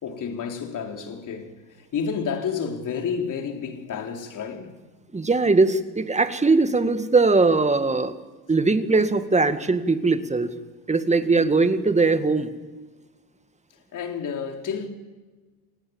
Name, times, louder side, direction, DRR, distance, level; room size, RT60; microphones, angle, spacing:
voice 1, 0.0-4.8 11.3-11.5 13.7-14.9, left 6 dB, 45° left, 4.2 m, -30 dB
voice 2, 5.1-8.1 8.5-10.5 10.9-12.5, right 3 dB, 15° right, 2.0 m, -20 dB
28.0 x 19.0 x 7.3 m
hypercardioid pair, 75°, 44 cm